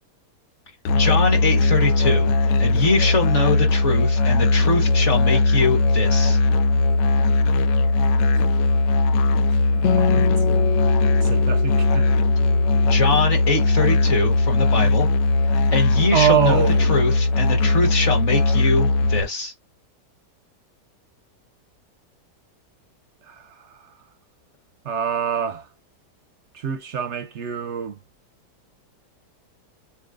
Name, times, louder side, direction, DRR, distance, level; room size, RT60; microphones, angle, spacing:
Musical instrument, 0.8-19.2, left 2 dB, 90° left, 1.3 m, -19 dB
voice 1, 0.9-6.4 12.8-15.1 15.5-19.5, left 3 dB, 45° left, 1.7 m, -23 dB
voice 2, 9.5-10.4 11.2-12.1 16.1-17.0 23.2-23.9 24.8-25.7 26.5-28.0, right 8 dB, 60° right, 0.7 m, -25 dB
Acoustic guitar, 9.8-13.6, left 11 dB, 65° left, 0.8 m, -29 dB
7.1 x 2.4 x 2.5 m
omnidirectional pair, 1.8 m